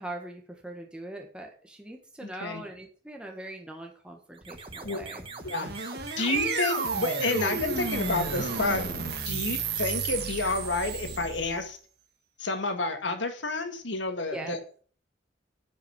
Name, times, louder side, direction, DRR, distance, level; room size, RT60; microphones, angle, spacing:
voice 1, 0.0-5.2 14.3-14.6, right 1 dB, 5° right, 1 dB, 1.4 m, -41 dB
voice 2, 2.2-2.6 4.8-5.0 5.4-5.7 6.2-8.9 9.3-11.8 12.4-14.8, left 3 dB, 70° left, 7 dB, 1.9 m, -30 dB
sound 1, 4.3-9.8, right 3 dB, 30° right, 1.2 m, -42 dB
sound 2, 5.3-11.6, right 4 dB, 55° right, 1.7 m, -32 dB
10.0 x 5.7 x 7.3 m, 0.43 s
head